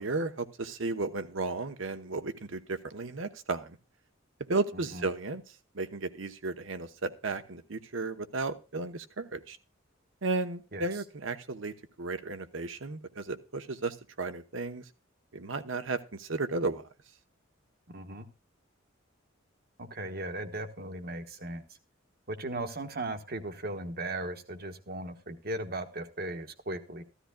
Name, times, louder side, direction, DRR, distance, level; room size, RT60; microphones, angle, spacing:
voice 1, 0.0-3.8 4.5-5.4 5.7-9.6 10.2-14.8 15.3-16.8, right 3 dB, 75° right, 1.0 m, -34 dB
voice 2, 17.9-18.3 19.8-21.6 22.3-27.0, right 2 dB, 50° right, 1.3 m, -37 dB
14.5 x 13.0 x 2.3 m
head